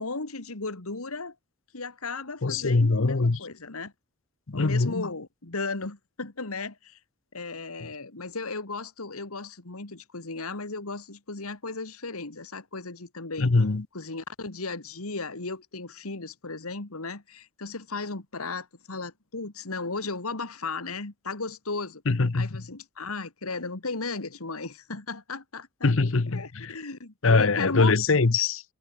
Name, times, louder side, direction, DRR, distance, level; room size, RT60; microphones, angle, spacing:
voice 1, 0.0-1.4 1.7-3.9 4.5-7.0 7.3-13.5 13.9-22.0 22.3-26.0 26.3-27.9, left 3 dB, 85° left, 2.2 m, -35 dB
voice 2, 2.4-3.4 4.5-5.1 13.4-13.9 22.1-22.6 25.8-26.7 27.2-28.6, left 3 dB, 65° left, 0.8 m, -23 dB
head